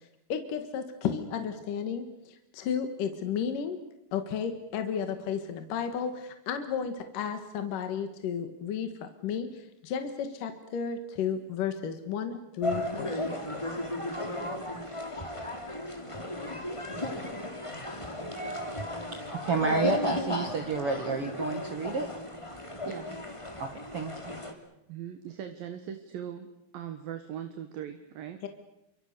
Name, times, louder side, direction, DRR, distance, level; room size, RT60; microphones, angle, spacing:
voice 1, 0.3-3.8 4.1-13.2 28.4-28.5, left 7 dB, 65° left, 7 dB, 3.0 m, -33 dB
sound 1, 12.6-24.5, left 1 dB, 10° left, 2.4 m, -35 dB
voice 2, 18.4-19.0 19.3-22.1 23.6-24.3, right 4 dB, 50° right, 5 dB, 2.1 m, -31 dB
voice 3, 22.9-23.2 24.9-26.5 26.7-28.4, right 9 dB, 70° right, 7 dB, 3.1 m, -40 dB
29.0 x 25.0 x 6.8 m, 0.86 s
omnidirectional pair, 4.4 m